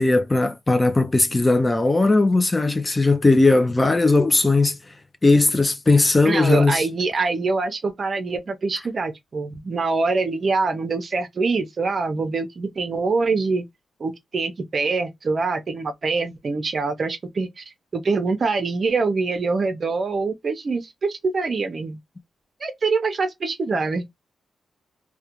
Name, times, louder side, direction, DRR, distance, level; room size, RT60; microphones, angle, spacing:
voice 1, 0.0-4.9 5.2-6.9, left 2 dB, 20° left, 0.3 m, -18 dB
voice 2, 6.2-13.7 14.0-17.6 17.9-22.0 22.6-24.1, right 4 dB, 40° right, 0.5 m, -24 dB
2.3 x 2.2 x 2.8 m
cardioid pair, 120°, 0 cm